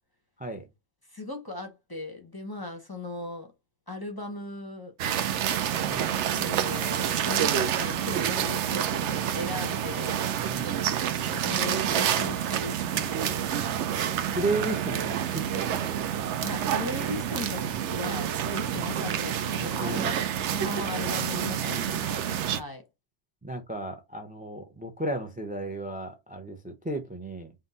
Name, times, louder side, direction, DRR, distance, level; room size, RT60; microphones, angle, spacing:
voice 1, 1.1-3.5 3.9-4.9 6.3-10.2 11.3-13.4 14.5-14.6 16.4-20.2 20.5-22.8, left 2 dB, 20° left, 0.7 m, -38 dB
sound 1, 5.0-22.6, right 9 dB, 80° right, 0.9 m, -28 dB
voice 2, 5.8-6.2 10.5-10.8 14.3-16.0 19.5-20.1 21.6-22.1 23.4-27.5, right 2 dB, 10° right, 0.4 m, -34 dB
3.8 x 2.5 x 4.0 m
omnidirectional pair, 1.2 m